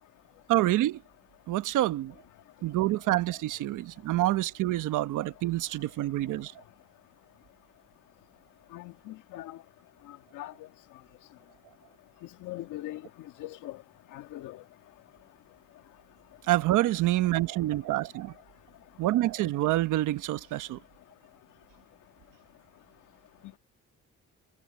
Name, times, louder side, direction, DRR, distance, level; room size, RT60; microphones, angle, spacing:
voice 1, 0.5-1.0 1.5-2.1 2.6-6.5 16.5-18.3 19.0-20.8, right 16 dB, 90° right, 1.2 m, -27 dB
voice 2, 8.7-9.6 10.3-10.5 12.4-13.0 13.4-13.8 14.1-14.6, left 15 dB, 90° left, 1.7 m, -40 dB
cardioid pair, 90°, 30 cm